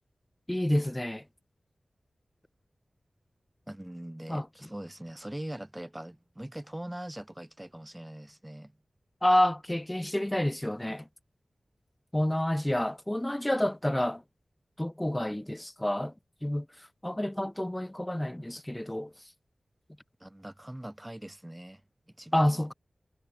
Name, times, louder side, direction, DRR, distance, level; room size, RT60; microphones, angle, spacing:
voice 1, 0.5-1.2 4.3-4.5 9.2-11.1 12.1-14.2 14.8-16.1 16.4-16.7 17.0-19.1 22.3-22.7, left 1 dB, 15° left, 0.7 m, -28 dB
voice 2, 3.7-8.8 20.2-21.8 22.2-22.7, right 1 dB, 15° right, 4.4 m, -42 dB
cardioid pair, 55°, 0 cm